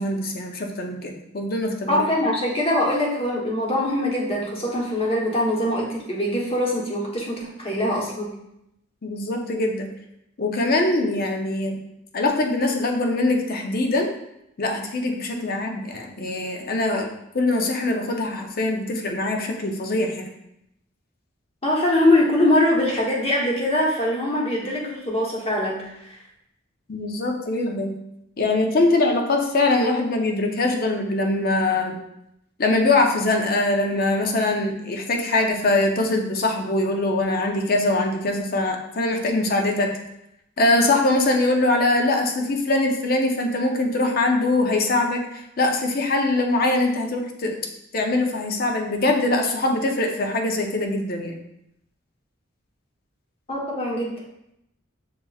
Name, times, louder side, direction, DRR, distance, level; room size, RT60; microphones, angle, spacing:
voice 1, 0.0-2.0 9.0-9.9 10.4-11.8 12.1-14.1 14.6-17.1 17.3-20.3 26.9-27.9 28.4-32.0 32.6-39.9 40.6-47.6 47.9-51.4, left 2 dB, 50° left, 3 dB, 0.6 m, -22 dB
voice 2, 1.9-8.3 21.6-26.2 53.5-54.2, left 1 dB, 30° left, -3 dB, 1.0 m, -23 dB
6.9 x 2.9 x 2.3 m, 0.81 s
head